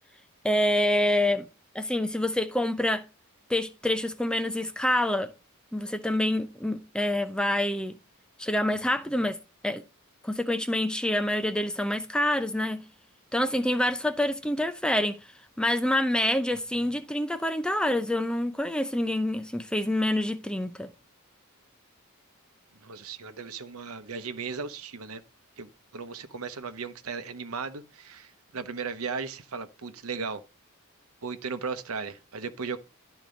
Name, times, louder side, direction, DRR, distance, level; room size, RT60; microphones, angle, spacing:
voice 1, 0.4-1.5 1.7-3.0 3.5-5.3 5.7-8.0 8.4-9.4 9.6-9.8 10.2-12.8 13.3-15.1 15.6-20.9, left 1 dB, 5° left, 0.5 m, -26 dB
voice 2, 22.8-25.2 25.6-30.4 31.2-32.8, right 5 dB, 75° right, 0.9 m, -36 dB
11.5 x 4.5 x 5.2 m
head